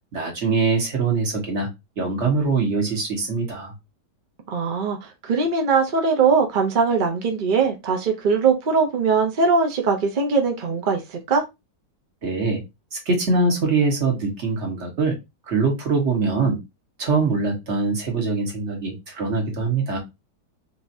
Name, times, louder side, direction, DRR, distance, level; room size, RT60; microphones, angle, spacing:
voice 1, 0.1-1.7 2.0-3.7 12.2-12.6 12.9-15.1 15.5-16.6 17.0-20.0, right 4 dB, 45° right, 1.5 m, -23 dB
voice 2, 4.5-11.4, right 5 dB, 60° right, 0.5 m, -21 dB
4.7 x 2.8 x 2.6 m
omnidirectional pair, 1.9 m